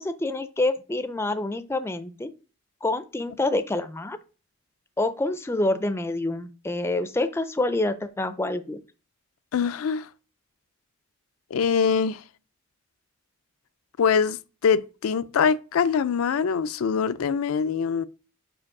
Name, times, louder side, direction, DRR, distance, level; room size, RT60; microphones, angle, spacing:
voice 1, 0.0-2.3 2.8-4.2 5.0-8.8, left 2 dB, 10° left, 0.4 m, -27 dB
voice 2, 9.5-10.1 11.5-12.2 14.0-14.4 14.6-18.0, left 6 dB, 90° left, 0.4 m, -23 dB
5.1 x 5.0 x 4.7 m
head